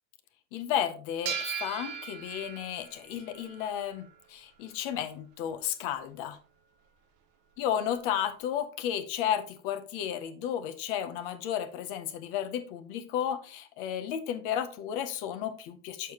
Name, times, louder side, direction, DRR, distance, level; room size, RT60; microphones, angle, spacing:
voice 1, 0.5-6.4 7.6-16.1, left 9 dB, 35° left, 10 dB, 0.6 m, -33 dB
sound 1, 1.3-4.2, right 7 dB, 25° right, 0.5 m, -38 dB
6.7 x 6.5 x 2.9 m, 0.38 s
supercardioid pair, 175°, 49 cm